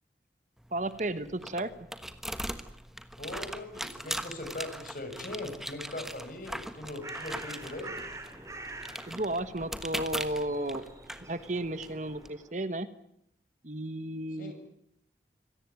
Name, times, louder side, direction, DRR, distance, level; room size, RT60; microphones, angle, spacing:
sound 1, 0.6-12.3, equal, ahead, 1.3 m, -41 dB
voice 1, 0.7-1.7 9.1-10.8 11.3-12.9 13.6-14.5, right 1 dB, 45° right, 13 dB, 1.3 m, -33 dB
voice 2, 3.2-8.0 14.3-14.5, left 2 dB, 50° left, 6 dB, 6.6 m, -40 dB
Bird, 6.6-12.6, right 2 dB, 15° right, 3.2 m, -46 dB
25.5 x 18.0 x 9.6 m, 0.73 s
head